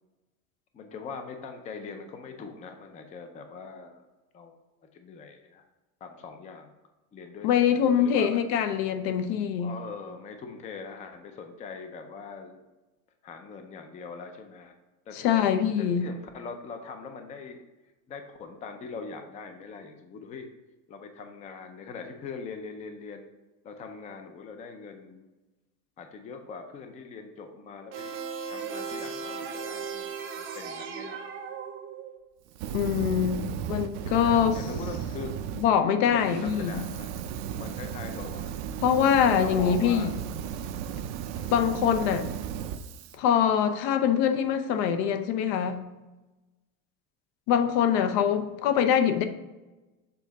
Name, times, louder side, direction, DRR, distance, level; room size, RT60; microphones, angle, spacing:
voice 1, 0.7-4.0 4.3-4.6 4.9-5.6 6.0-6.7 7.1-8.4 9.6-12.6 13.2-14.7 15.1-15.4 15.8-17.6 18.1-20.5 20.9-23.3 23.6-25.3 26.0-28.1 28.5-31.2 33.3-33.6 34.1-35.3 36.0-37.3 37.6-38.6 39.4-40.1 41.3-41.5 48.0-48.3, left 5 dB, 20° left, 6 dB, 0.4 m, -42 dB
voice 2, 7.4-9.7 15.2-16.1 32.7-34.5 35.6-36.9 38.8-40.1 41.5-42.3 43.2-45.8 47.5-49.2, left 8 dB, 70° left, 9 dB, 0.7 m, -24 dB
sound 1, 27.9-32.2, right 6 dB, 35° right, 0.7 m, -37 dB
Fire, 32.5-35.7 36.1-43.1, right 8 dB, 75° right, 0.6 m, -35 dB
7.0 x 3.6 x 4.1 m, 1.1 s
cardioid pair, 160°, 37 cm